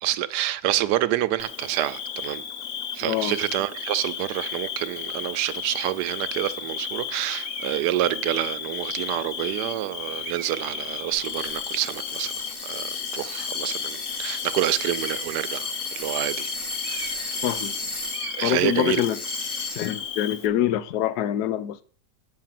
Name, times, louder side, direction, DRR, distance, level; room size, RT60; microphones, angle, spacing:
voice 1, 0.0-2.4 2.9-12.3 12.6-16.5 16.9-17.3 18.2-19.0, right 13 dB, 80° right, 1.2 m, -28 dB
Bird / Cricket, 1.4-20.5, left 8 dB, 55° left, 1.1 m, -35 dB
voice 2, 3.0-3.3 17.4-17.7 18.4-19.2 19.8-21.8, left 12 dB, 70° left, 1.2 m, -25 dB
sound 1, 7.4-7.8 8.6-8.7 10.2-10.8 14.9-15.5 16.8-17.4 17.7-17.8 18.1-18.5, right 8 dB, 55° right, 1.0 m, -41 dB
sound 2, 11.1-18.5 18.9-20.1, left 2 dB, 35° left, 1.8 m, -34 dB
8.5 x 5.2 x 7.4 m
omnidirectional pair, 1.8 m